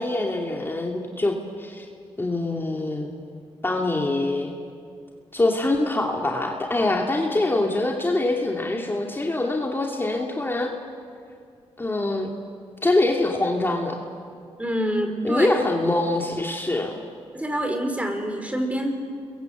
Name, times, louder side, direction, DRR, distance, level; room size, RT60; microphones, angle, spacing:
voice 1, 0.0-1.8 2.2-3.1 3.6-4.5 5.3-10.7 11.8-12.3 12.8-14.0 15.2-17.0, left 2 dB, 20° left, 1 dB, 2.7 m, -24 dB
voice 2, 14.6-15.6 17.3-18.9, right 1 dB, 10° right, 5 dB, 4.4 m, -26 dB
29.0 x 22.5 x 8.1 m, 2.2 s
cardioid pair, 75°, 11 cm